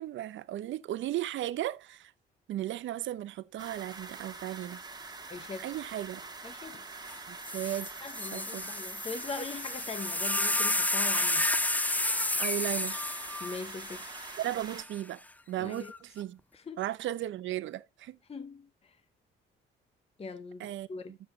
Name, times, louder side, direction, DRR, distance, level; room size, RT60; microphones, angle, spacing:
voice 1, 0.0-2.1 2.5-4.8 5.6-6.2 7.3-7.9 8.3-8.7 12.3-13.0 14.4-15.2 15.5-16.4 16.8-18.2 20.6-21.2, right 13 dB, 75° right, 0.7 m, -36 dB
sound 1, 3.6-14.8, right 3 dB, 20° right, 1.7 m, -45 dB
voice 2, 5.3-5.7 6.4-6.8 8.0-11.5 13.4-14.0 15.6-15.9 16.5-16.8 18.3-19.0 20.2-21.1, left 4 dB, 30° left, 0.9 m, -41 dB
sound 2, 7.1-7.2 7.4-14.8 15.7-16.2, left 1 dB, 10° left, 0.5 m, -31 dB
10.0 x 7.4 x 3.2 m
cardioid pair, 90°, 20 cm